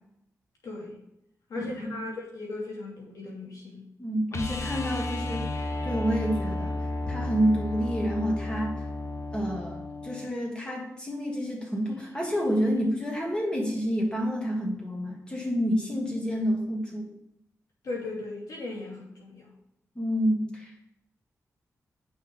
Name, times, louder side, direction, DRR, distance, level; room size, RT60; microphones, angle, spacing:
voice 1, 0.6-1.0 1.5-3.8 17.8-19.5, left 2 dB, 80° left, -3 dB, 2.7 m, -37 dB
voice 2, 4.0-6.8 7.1-8.9 9.3-17.1 19.9-20.8, equal, 15° left, -2 dB, 2.5 m, -29 dB
sound 1, 4.3-10.3 12.8-12.9, left 2 dB, 50° left, 0.9 m, -33 dB
8.7 x 6.1 x 3.8 m, 0.81 s
cardioid pair, 80°, 6 cm